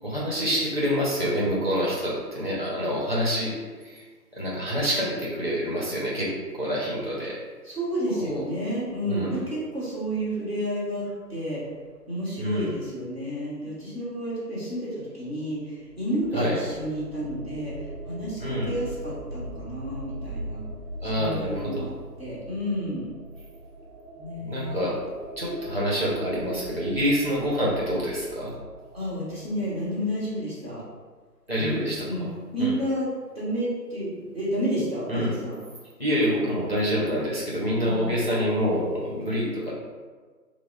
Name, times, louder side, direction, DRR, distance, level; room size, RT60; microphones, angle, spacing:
voice 1, 0.0-3.5 3.8-4.0 4.3-7.4 8.2-8.4 9.1-9.3 12.4-12.7 16.3-16.6 18.4-18.7 21.0-21.9 24.4-25.0 25.4-28.5 31.5-32.3 32.6-32.7 35.1-35.3 36.0-39.7, equal, 40° left, -6 dB, 0.7 m, -27 dB
voice 2, 7.6-11.6 12.1-20.6 21.1-21.9 22.2-23.1 24.1-25.0 28.9-30.8 31.5-32.2 32.5-33.1 33.3-35.6 37.8-38.1, equal, 40° right, -9 dB, 1.1 m, -31 dB
sound 1, 15.8-30.4, right 1 dB, 65° right, 0.5 m, -41 dB
5.9 x 2.1 x 2.4 m, 1.4 s
figure-of-eight pair, 175°, 50 cm